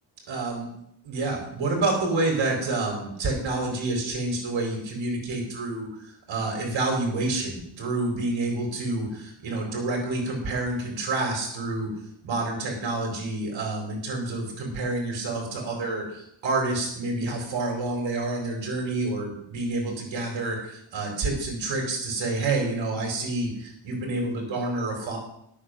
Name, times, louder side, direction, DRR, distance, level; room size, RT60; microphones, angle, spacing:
voice 1, 0.3-0.7 1.0-11.9 12.2-25.2, right 2 dB, 70° right, 0 dB, 4.4 m, -28 dB
11.0 x 8.5 x 6.4 m, 0.72 s
cardioid pair, 105°, 47 cm